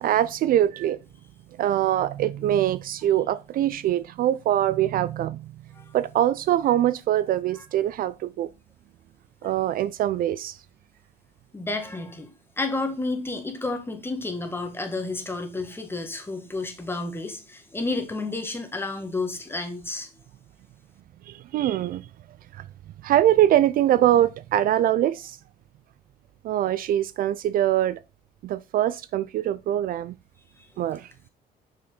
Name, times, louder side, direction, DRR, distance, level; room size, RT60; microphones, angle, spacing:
voice 1, 0.0-1.0 1.6-5.5 5.9-8.5 9.4-10.5 21.3-22.0 22.6-22.7 23.0-25.4 26.4-28.0 28.4-30.1 30.8-31.1, right 12 dB, 60° right, 0.4 m, -23 dB
voice 2, 11.5-12.3 12.6-20.3 30.6-30.7, left 3 dB, 15° left, 1.6 m, -31 dB
6.9 x 5.5 x 4.0 m
cardioid pair, 110°, 17 cm